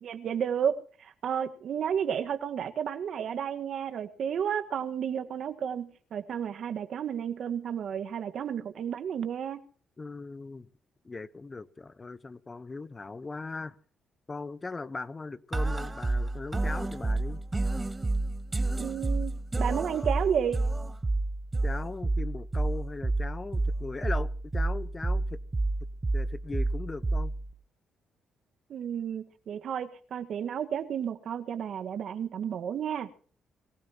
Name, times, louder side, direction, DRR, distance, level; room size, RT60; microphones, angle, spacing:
voice 1, 0.0-9.6 18.7-20.6 28.7-33.1, right 8 dB, 65° right, 1.7 m, -32 dB
voice 2, 10.0-10.7 11.0-13.8 14.3-17.4 21.6-25.4 26.1-27.3, left 3 dB, 30° left, 1.1 m, -39 dB
sound 1, 15.5-27.5, right 2 dB, 25° right, 1.1 m, -30 dB
23.5 x 15.5 x 3.1 m
supercardioid pair, 60°, 0 cm